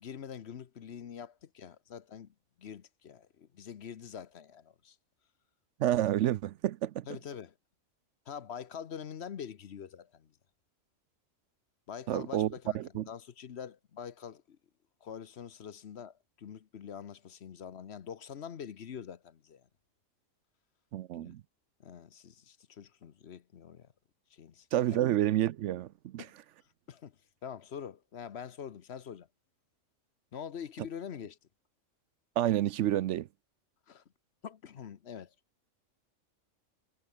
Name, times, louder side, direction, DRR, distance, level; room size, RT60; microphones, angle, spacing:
voice 1, 0.0-5.0 7.1-7.5 8.3-10.3 11.9-12.8 13.1-14.6 15.0-19.7 21.1-21.3 21.8-23.9 24.3-25.0 26.2-26.3 26.9-29.3 30.3-31.4 33.9-34.0 34.4-35.3, left 8 dB, 60° left, 1.1 m, -45 dB
voice 2, 5.8-7.1 12.1-13.0 20.9-21.4 24.7-26.2 32.4-33.3, right 12 dB, 70° right, 0.9 m, -29 dB
omnidirectional pair, 1.3 m